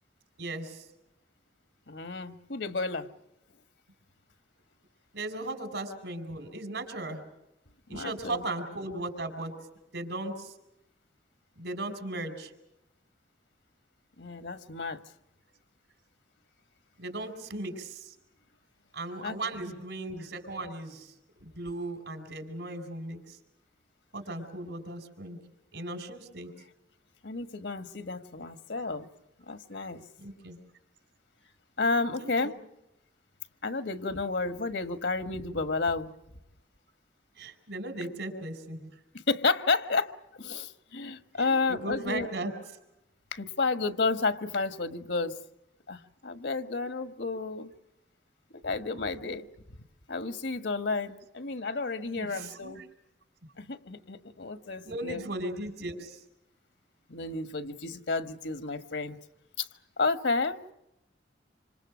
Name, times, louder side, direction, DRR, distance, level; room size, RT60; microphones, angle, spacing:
voice 1, 0.4-0.9 5.1-7.2 7.9-9.6 9.9-10.5 11.6-12.5 17.0-18.1 18.9-21.1 21.4-23.4 24.1-25.4 25.7-26.5 30.2-30.6 32.2-32.5 37.4-39.0 41.3-42.5 52.2-52.8 54.8-56.2, right 2 dB, 80° right, 7 dB, 4.7 m, -37 dB
voice 2, 1.9-3.1 7.9-8.4 14.2-15.0 19.2-19.7 27.2-29.1 29.5-30.0 31.8-32.5 33.6-36.1 39.1-42.3 43.3-45.4 45.9-47.7 48.6-49.5 50.1-52.8 53.6-55.2 57.1-59.2 59.6-59.7 60.0-60.6, left 3 dB, 80° left, 9 dB, 1.5 m, -31 dB
27.0 x 26.5 x 6.3 m, 0.86 s
head